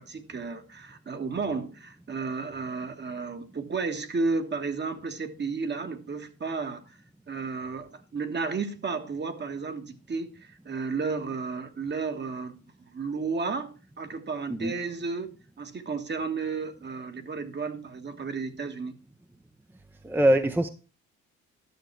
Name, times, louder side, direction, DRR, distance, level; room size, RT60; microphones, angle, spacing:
voice 1, 0.0-7.0 7.3-19.0, right 4 dB, 35° right, 1.5 m, -33 dB
voice 2, 20.0-20.7, right 1 dB, 5° right, 0.7 m, -23 dB
11.5 x 6.4 x 4.6 m
cardioid pair, 90°, 30 cm